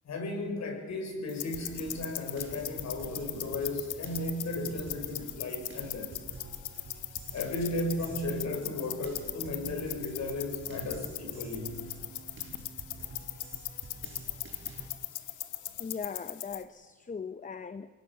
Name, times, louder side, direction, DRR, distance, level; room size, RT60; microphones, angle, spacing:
voice 1, 0.0-6.1 7.3-11.8, left 1 dB, 65° left, 4 dB, 5.8 m, -35 dB
sound 1, 1.3-16.6, left 13 dB, 80° left, 1.3 m, -40 dB
sound 2, 1.5-14.9, right 3 dB, 40° right, 6.7 m, -48 dB
voice 2, 15.8-17.9, left 5 dB, 25° left, 12 dB, 0.8 m, -39 dB
24.5 x 18.0 x 7.2 m, 1.5 s
cardioid pair, 90°, 30 cm